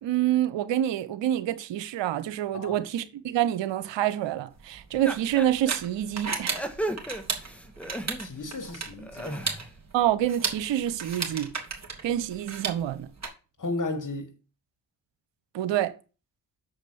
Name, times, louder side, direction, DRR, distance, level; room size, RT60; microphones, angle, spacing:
voice 1, 0.0-6.6 9.9-11.5 12.0-13.1 15.5-15.9, right 12 dB, 70° right, 1.1 m, -27 dB
sound 1, 4.6-13.3, right 4 dB, 35° right, 3.2 m, -35 dB
sound 2, 5.0-5.7 6.3-8.5 8.9-9.7, right 1 dB, 5° left, 2.0 m, -35 dB
voice 2, 8.2-9.6 13.6-14.3, left 2 dB, 45° left, 2.4 m, -34 dB
7.0 x 5.1 x 7.1 m
hypercardioid pair, 40°, 45 cm